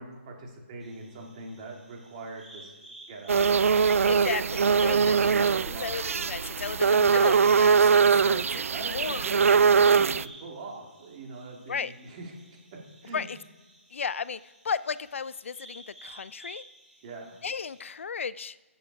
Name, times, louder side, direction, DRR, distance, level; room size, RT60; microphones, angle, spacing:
voice 1, 0.0-2.7 3.1-3.4 4.6-6.0 8.2-8.4 8.7-12.3 13.0-13.2 17.0-17.3, right 3 dB, 25° right, 0 dB, 2.4 m, -41 dB
sound 1, 0.8-18.0, right 1 dB, 5° right, 1.3 m, -53 dB
sound 2, 3.3-10.2, right 6 dB, 85° right, 0.3 m, -22 dB
voice 2, 4.1-9.3 11.7-11.9 13.1-13.4 13.9-16.6 17.4-18.6, left 6 dB, 65° left, 18 dB, 0.4 m, -35 dB
15.0 x 7.0 x 4.7 m, 1.3 s
hypercardioid pair, 170°, 7 cm